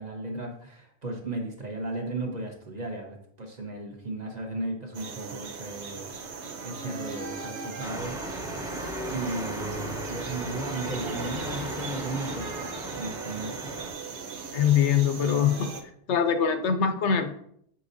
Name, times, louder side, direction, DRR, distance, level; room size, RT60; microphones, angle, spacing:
voice 1, 0.0-6.1 6.6-8.2 9.1-13.8 15.1-15.4, right 2 dB, 40° right, 1 dB, 1.2 m, -35 dB
sound 1, 4.9-15.8, right 5 dB, 75° right, 1.1 m, -38 dB
sound 2, 7.8-13.9, right 1 dB, 5° right, 0.7 m, -36 dB
voice 2, 14.5-15.7 16.1-17.3, left 8 dB, 85° left, 9 dB, 1.0 m, -23 dB
7.4 x 5.5 x 2.7 m, 0.68 s
omnidirectional pair, 1.2 m